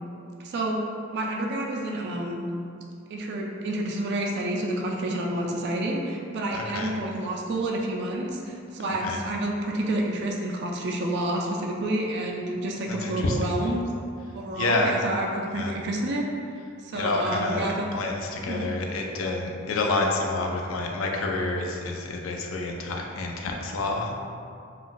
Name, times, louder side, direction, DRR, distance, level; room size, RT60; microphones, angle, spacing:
voice 1, 0.4-0.8 1.1-2.4 3.1-13.8 14.3-16.3 16.8-17.7 18.5-18.7, right 1 dB, 55° right, -1 dB, 0.3 m, -29 dB
voice 2, 6.5-6.9 8.8-9.2 12.9-13.4 14.5-14.9 15.5-15.7 16.9-24.3, left 2 dB, 75° left, 1 dB, 0.4 m, -28 dB
3.7 x 2.3 x 2.5 m, 2.4 s
head